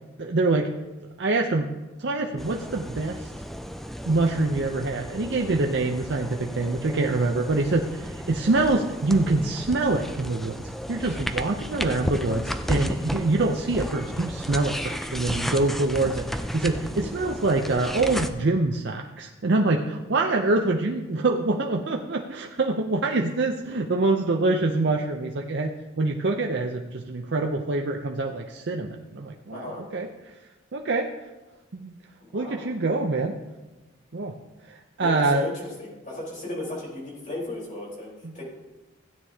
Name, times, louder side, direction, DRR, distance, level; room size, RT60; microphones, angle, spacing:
voice 1, 0.2-0.7 1.2-1.7 2.0-3.3 4.1-30.1 30.7-31.1 31.7-31.9 32.3-33.4 34.1-34.3 34.6-35.5 38.2-38.4, right 2 dB, 55° right, 2 dB, 0.6 m, -25 dB
sound 1, 2.4-18.3, equal, ahead, 0.4 m, -33 dB
voice 2, 29.5-29.8 32.2-32.7 35.0-38.5, left 2 dB, 40° left, -3 dB, 4.0 m, -35 dB
16.0 x 9.2 x 2.8 m, 1.1 s
head